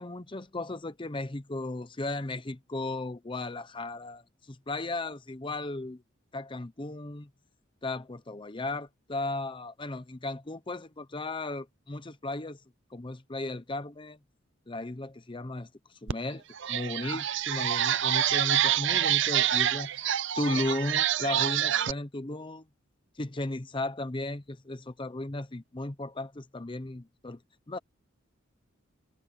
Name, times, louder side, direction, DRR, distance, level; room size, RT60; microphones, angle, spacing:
voice 1, 0.0-4.2 4.5-6.0 6.3-7.3 7.8-12.6 12.9-14.2 14.7-15.7 16.0-16.4 16.7-19.9 20.4-22.6 23.2-27.4 27.7-27.8, left 2 dB, 25° left, 0.8 m, -35 dB
sound 1, 16.1-16.2 16.6-21.9, right 10 dB, 65° right, 0.6 m, -27 dB
head